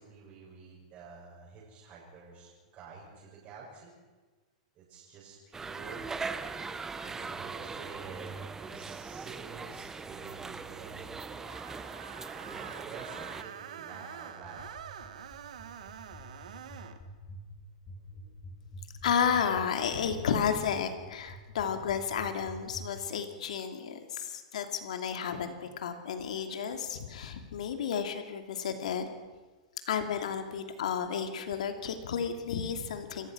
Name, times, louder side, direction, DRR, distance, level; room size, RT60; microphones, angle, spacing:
voice 1, 0.0-3.9 4.8-6.1 6.6-11.4 12.4-14.7 15.8-15.9 18.1-18.7 26.2-26.3, right 5 dB, 35° right, -6 dB, 7.5 m, -49 dB
sound 1, 5.5-13.4, right 4 dB, 10° right, 1.0 m, -40 dB
Screech, 11.5-17.0, right 9 dB, 80° right, 1.8 m, -46 dB
sound 2, 14.4-22.8, left 1 dB, 20° left, 5.4 m, -47 dB
voice 2, 19.0-29.1 29.9-33.3, left 7 dB, 80° left, 7 dB, 2.7 m, -32 dB
28.0 x 16.0 x 6.2 m, 1.4 s
hypercardioid pair, 135°, 4 cm